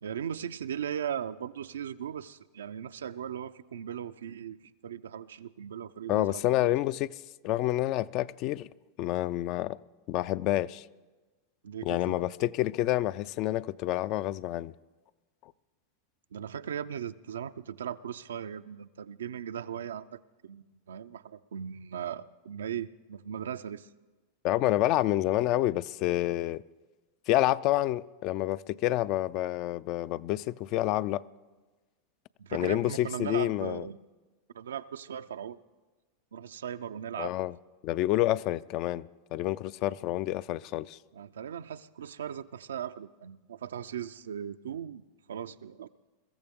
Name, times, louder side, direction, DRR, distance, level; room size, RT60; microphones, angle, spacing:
voice 1, 0.0-6.7 11.6-12.2 16.3-23.9 32.4-34.0 34.5-35.6 36.3-37.3 41.1-45.0 45.3-45.9, right 9 dB, 85° right, 0.4 m, -38 dB
voice 2, 6.1-7.1 7.4-8.7 9.0-9.8 10.1-10.9 11.8-14.7 24.4-26.6 27.3-31.2 32.5-33.9 37.2-37.6 37.8-41.0, left 15 dB, 50° left, 0.4 m, -28 dB
22.5 x 14.0 x 3.6 m
hypercardioid pair, 100°, 0 cm